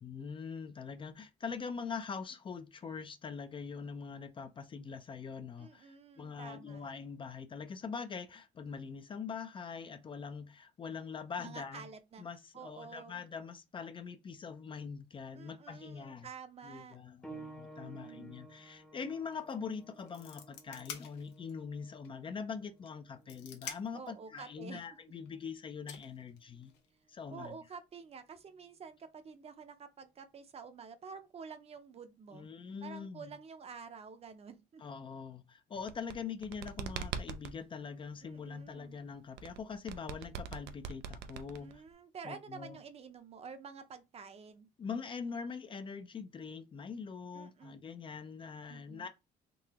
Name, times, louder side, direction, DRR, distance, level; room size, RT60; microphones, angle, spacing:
voice 1, 0.0-11.9 12.2-16.3 16.6-26.7 27.1-27.5 32.3-33.3 34.8-41.8 42.2-42.8 44.8-49.1, left 5 dB, 30° left, 0.4 m, -43 dB
voice 2, 5.6-6.8 11.4-12.2 12.5-13.2 15.3-17.0 17.8-18.4 23.9-24.8 27.3-32.5 32.8-34.8 38.2-39.0 41.6-44.7 47.3-47.8 48.7-49.1, right 6 dB, 35° right, 0.6 m, -49 dB
sound 1, 17.2-27.5 28.4-28.5 29.3-29.4, right 3 dB, 5° left, 0.7 m, -55 dB
sound 2, 19.3-19.5 19.8-21.6 22.0-22.1 22.9-24.1 25.3-25.4 25.9-26.9, left 8 dB, 85° left, 0.9 m, -47 dB
sound 3, 35.8-37.6 39.4-41.9, right 7 dB, 85° right, 0.5 m, -42 dB
3.8 x 2.8 x 2.9 m
cardioid pair, 110°, 17 cm